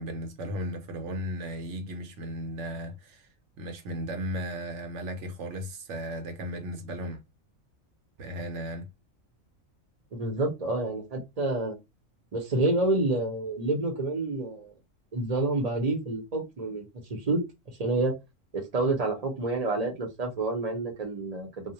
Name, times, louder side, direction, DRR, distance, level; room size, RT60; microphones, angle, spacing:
voice 1, 0.0-3.3 3.6-7.2 8.2-8.9, equal, 70° right, 0.9 m, -35 dB
voice 2, 10.1-11.8 12.3-14.7 15.1-17.4 17.7-18.1 18.5-21.5, right 2 dB, 40° right, 0.6 m, -28 dB
2.2 x 2.1 x 2.7 m
omnidirectional pair, 1.4 m